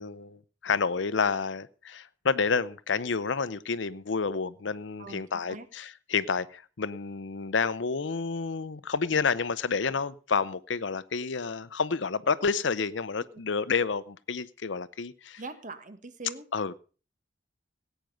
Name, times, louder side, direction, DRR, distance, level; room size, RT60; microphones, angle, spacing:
voice 1, 0.0-15.4 16.5-16.7, left 5 dB, 75° left, 18 dB, 0.7 m, -29 dB
voice 2, 5.0-5.7 13.3-13.4 15.4-16.5, right 3 dB, 45° right, 11 dB, 1.5 m, -42 dB
17.0 x 9.2 x 5.1 m, 0.38 s
head